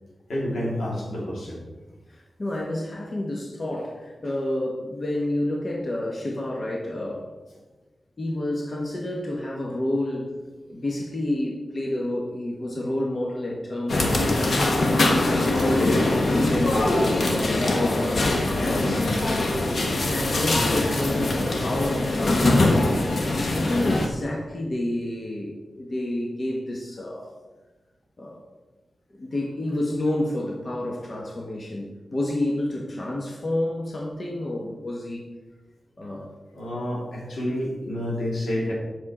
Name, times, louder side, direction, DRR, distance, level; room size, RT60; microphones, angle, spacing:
voice 1, 0.3-1.6 18.7-19.1 23.5-23.6 36.5-38.7, left 1 dB, 90° left, -4 dB, 2.5 m, -29 dB
voice 2, 2.1-7.3 8.2-10.3 10.7-14.6 15.2-18.1 18.6-19.8 20.1-23.1 23.5-27.3 28.2-28.5 29.1-35.2 36.0-36.3, left 1 dB, 45° left, -1 dB, 1.2 m, -29 dB
sound 1, 13.9-24.1, left 2 dB, 65° left, 1.2 m, -22 dB
7.5 x 6.3 x 4.3 m, 1.2 s
wide cardioid pair, 75°, 0 cm